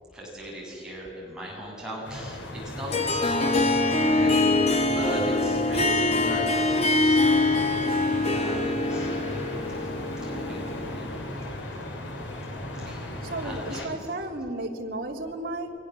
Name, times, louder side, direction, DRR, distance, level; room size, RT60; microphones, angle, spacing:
voice 1, 0.1-2.9 3.2-9.1 9.8-9.9 10.2-11.1 12.9-13.1 13.4-13.9, right 1 dB, 5° right, -5 dB, 7.7 m, -37 dB
sound 1, 2.0-13.9, left 1 dB, 85° left, 3.5 m, -37 dB
Harp, 2.9-11.3, left 2 dB, 35° left, 2.5 m, -24 dB
voice 2, 13.0-15.7, right 2 dB, 55° right, 0 dB, 3.3 m, -34 dB
30.0 x 23.0 x 7.7 m, 2.6 s
head